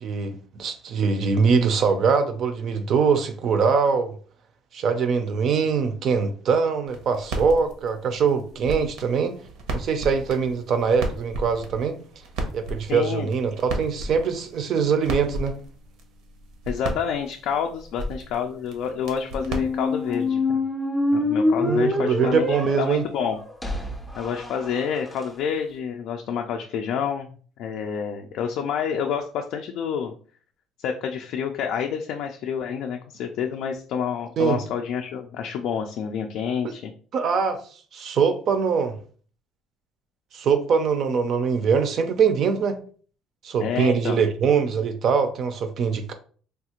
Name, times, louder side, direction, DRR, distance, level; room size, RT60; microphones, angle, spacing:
voice 1, 0.0-4.1 4.7-9.3 9.7-12.0 12.5-15.5 21.6-23.0 34.4-34.6 37.1-37.6 37.9-39.0 40.3-42.8 43.4-46.1, right 5 dB, 50° right, 0.5 m, -23 dB
sound 1, 6.9-20.3, right 1 dB, 75° right, 0.7 m, -35 dB
voice 2, 12.9-13.3 16.7-20.6 21.1-23.4 24.2-27.3 27.6-30.1 30.8-36.9 43.6-44.2, left 7 dB, 65° left, 0.3 m, -28 dB
sound 2, 19.3-25.2, left 2 dB, 5° left, 0.5 m, -26 dB
3.4 x 2.4 x 2.9 m
cardioid pair, 140°, 0 cm